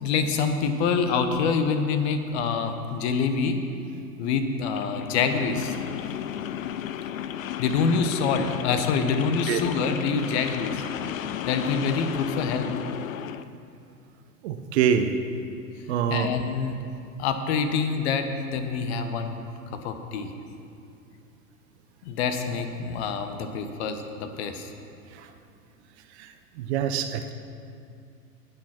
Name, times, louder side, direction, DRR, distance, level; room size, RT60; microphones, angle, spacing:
voice 1, 0.0-3.6 4.2-5.8 7.6-10.8 11.5-12.7 16.1-16.8 17.2-20.3 22.0-24.7, left 5 dB, 45° left, 7 dB, 1.2 m, -26 dB
sound 1, 4.6-13.5, left 10 dB, 60° left, 0.6 m, -34 dB
voice 2, 14.4-15.1 15.9-16.3 25.2-25.3 26.2-26.3 26.6-27.3, right 8 dB, 45° right, 8 dB, 0.9 m, -25 dB
18.0 x 6.3 x 5.9 m, 2.5 s
figure-of-eight pair, 90°, 46 cm